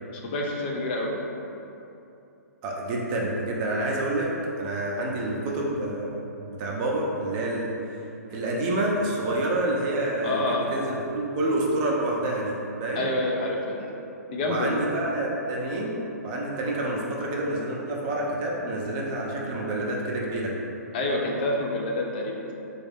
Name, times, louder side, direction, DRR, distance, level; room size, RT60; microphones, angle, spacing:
voice 1, 0.1-1.2 10.2-10.7 12.9-13.9 14.3-14.8 20.9-22.5, left 2 dB, 35° left, -1 dB, 0.5 m, -28 dB
voice 2, 2.6-4.3 4.6-6.2 6.5-7.7 8.3-12.5 12.8-13.1 14.5-20.6, right 1 dB, 30° right, -2 dB, 0.6 m, -28 dB
4.0 x 2.4 x 3.4 m, 2.8 s
figure-of-eight pair, 125°, 9 cm